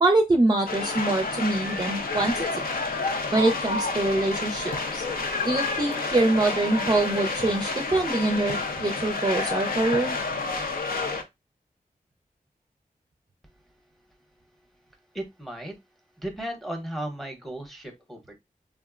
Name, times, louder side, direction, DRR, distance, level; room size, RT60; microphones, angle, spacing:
voice 1, 0.0-2.6 3.3-5.1 5.4-10.2, right 2 dB, 30° right, 2 dB, 0.4 m, -24 dB
sound 1, 0.7-11.2, left 3 dB, 80° left, 0.6 m, -29 dB
voice 2, 15.1-15.7 16.2-18.4, right 1 dB, ahead, 2 dB, 0.7 m, -35 dB
3.5 x 2.0 x 2.4 m, 0.20 s
wide cardioid pair, 95°, 15 cm